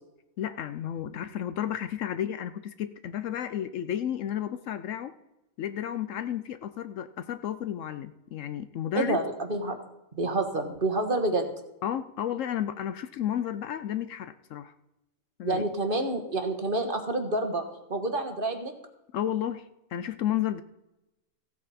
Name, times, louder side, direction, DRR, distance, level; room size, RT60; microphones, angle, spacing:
voice 1, 0.4-5.2 5.6-9.2 11.8-14.7 15.4-15.7 19.1-19.6 19.9-20.6, left 10 dB, 70° left, 12 dB, 0.9 m, -32 dB
voice 2, 8.9-9.8 10.1-11.5 15.4-17.6 17.9-18.7, right 2 dB, 40° right, 5 dB, 1.4 m, -28 dB
15.5 x 8.7 x 4.2 m, 0.96 s
omnidirectional pair, 1.5 m